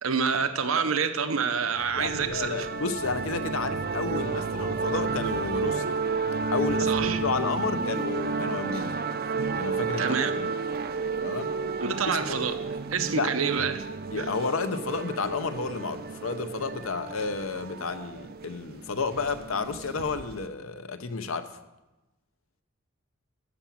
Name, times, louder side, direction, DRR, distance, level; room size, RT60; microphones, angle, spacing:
voice 1, 0.0-2.7 6.9-7.2 10.0-10.3 11.8-12.6 12.9-13.9 14.2-14.3, right 6 dB, 90° right, 0.8 m, -27 dB
sound 1, 1.7-20.5, right 4 dB, 50° right, 0.5 m, -32 dB
voice 2, 2.0-5.9 6.5-8.9 9.6-10.5 11.2-11.6 12.0-12.5 13.1-13.3 14.1-21.5, left 4 dB, 85° left, 0.8 m, -31 dB
13.0 x 5.8 x 7.3 m
head